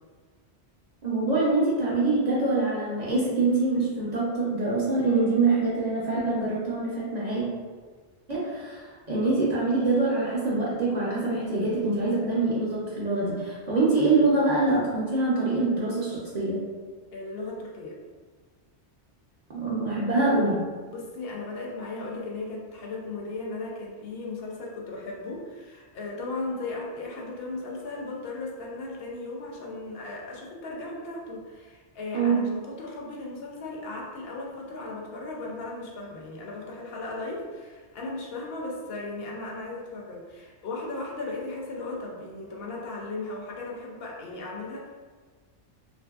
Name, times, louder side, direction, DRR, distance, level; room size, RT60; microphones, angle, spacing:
voice 1, 1.0-7.5 8.3-16.6 19.5-20.6 32.1-32.5, right 3 dB, 50° right, -7 dB, 0.5 m, -25 dB
voice 2, 17.1-18.0 20.9-44.9, left 2 dB, 65° left, -2 dB, 0.7 m, -36 dB
2.7 x 2.5 x 2.3 m, 1.5 s
omnidirectional pair, 1.2 m